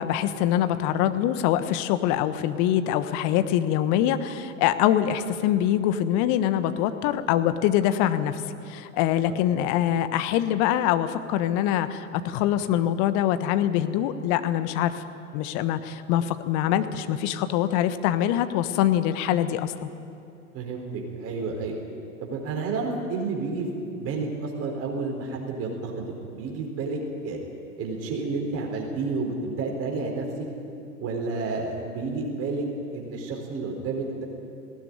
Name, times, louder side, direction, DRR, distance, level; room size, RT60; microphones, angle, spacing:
voice 1, 0.0-8.4 8.7-15.0 15.3-19.9, left 11 dB, 45° left, 11 dB, 1.4 m, -24 dB
voice 2, 20.5-21.8 22.2-27.4 27.8-30.4 31.0-34.2, right 3 dB, 35° right, 0 dB, 4.4 m, -30 dB
19.5 x 17.5 x 9.8 m, 2.6 s
figure-of-eight pair, 90°, 41 cm